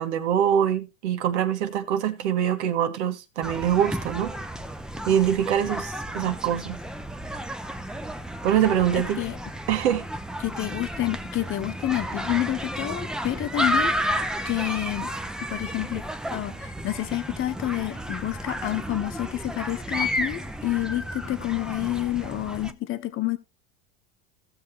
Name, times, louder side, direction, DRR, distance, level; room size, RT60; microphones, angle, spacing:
voice 1, 0.0-4.3 5.1-6.8 8.4-9.2 9.7-10.0, right 9 dB, 80° right, 1.7 m, -24 dB
sound 1, 3.4-22.7, equal, ahead, 0.8 m, -32 dB
voice 2, 10.4-15.1 15.5-16.0 16.3-23.4, left 14 dB, 40° left, 1.3 m, -29 dB
16.5 x 6.2 x 3.2 m
supercardioid pair, 115°, 33 cm